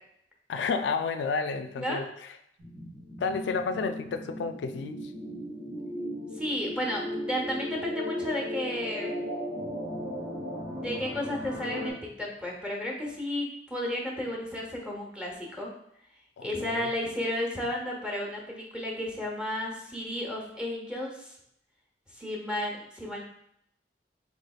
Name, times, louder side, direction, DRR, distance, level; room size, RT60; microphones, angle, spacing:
voice 1, 0.5-2.1 3.2-5.1 16.4-16.9, left 4 dB, 75° left, 8 dB, 0.3 m, -31 dB
sound 1, 2.6-11.9, equal, 65° right, 1.1 m, -36 dB
voice 2, 6.4-9.2 10.7-15.7 16.4-21.3 22.1-23.2, left 1 dB, 5° right, -2 dB, 0.8 m, -33 dB
4.2 x 3.2 x 2.3 m, 0.73 s
head